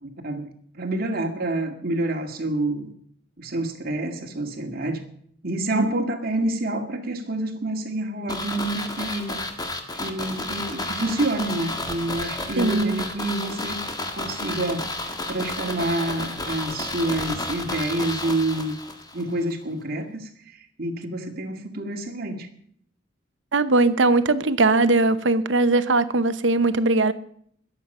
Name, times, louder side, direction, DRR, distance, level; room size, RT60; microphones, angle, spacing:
voice 1, 0.0-0.5 0.7-2.9 3.4-5.0 5.4-9.4 9.9-13.8 14.2-18.7 19.1-22.5, right 2 dB, 50° right, 4 dB, 2.1 m, -28 dB
sound 1, 8.3-19.2 19.5-19.6, left 2 dB, 20° left, 1.7 m, -31 dB
voice 2, 12.6-13.0 23.5-27.1, right 2 dB, 70° right, 12 dB, 0.9 m, -20 dB
21.5 x 7.5 x 5.5 m, 0.63 s
head